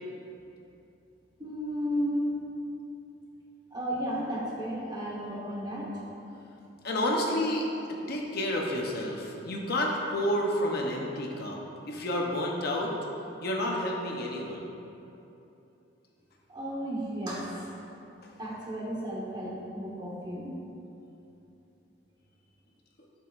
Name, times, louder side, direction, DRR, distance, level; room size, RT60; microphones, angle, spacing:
voice 1, 1.4-2.4 3.7-5.9 16.5-17.8 18.4-20.6, equal, 20° right, -5 dB, 1.2 m, -33 dB
voice 2, 6.8-7.7 8.1-11.6 11.9-12.9 13.4-14.6, left 1 dB, 50° left, -1 dB, 0.9 m, -30 dB
10.5 x 6.4 x 2.6 m, 2.9 s
head